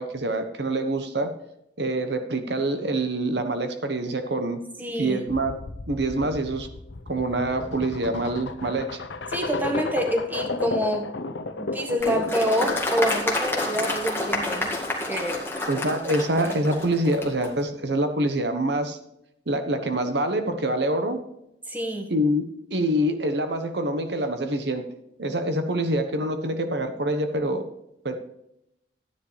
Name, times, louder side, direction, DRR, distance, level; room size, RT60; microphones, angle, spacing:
voice 1, 0.0-1.3 1.8-4.6 5.0-5.6 5.9-6.7 7.1-9.0 15.7-19.0 19.5-21.2 22.1-24.9 25.2-27.7 28.0-28.2, right 1 dB, 65° right, 7 dB, 1.1 m, -25 dB
voice 2, 4.8-5.3 9.3-11.1 11.6-14.8 15.1-15.5 21.7-22.1, equal, 10° right, 3 dB, 1.4 m, -27 dB
sound 1, 5.3-12.5, left 3 dB, 90° left, 0.8 m, -33 dB
Applause, 12.0-17.5, left 2 dB, 15° left, 1.9 m, -29 dB
12.5 x 10.0 x 3.3 m, 0.80 s
head